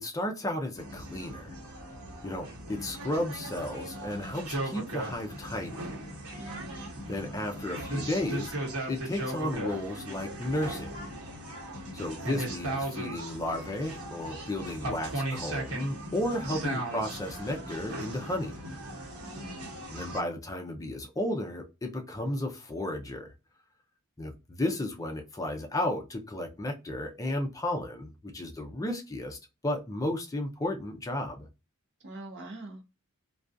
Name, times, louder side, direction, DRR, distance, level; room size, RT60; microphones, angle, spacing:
voice 1, 0.0-1.5 2.2-5.9 7.1-8.5 8.9-10.9 11.9-18.6 19.9-23.3 24.2-29.4 29.6-31.5, left 1 dB, 15° left, 0.4 m, -33 dB
sound 1, 0.8-20.2, right 1 dB, 75° right, 1.0 m, -37 dB
voice 2, 6.4-6.9 19.2-19.7 32.0-32.9, right 2 dB, 55° right, 0.7 m, -44 dB
2.3 x 2.2 x 2.5 m
head